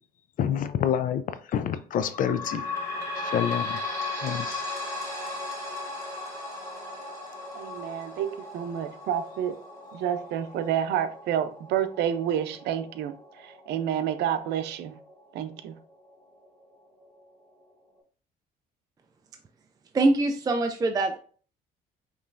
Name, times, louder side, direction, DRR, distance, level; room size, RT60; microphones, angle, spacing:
voice 1, 0.4-1.2 1.5-2.6 3.2-3.8 4.2-4.6, left 9 dB, 55° left, 0.5 m, -27 dB
sound 1, 2.0-15.2 15.7-15.8 16.1-16.2 17.0-17.1, left 2 dB, 20° left, 2.0 m, -37 dB
voice 2, 7.5-9.5 9.9-14.9 15.3-15.8, right 9 dB, 80° right, 0.5 m, -29 dB
voice 3, 19.9-21.2, right 2 dB, 20° right, 0.4 m, -23 dB
5.4 x 3.1 x 2.5 m
cardioid pair, 110°, 17 cm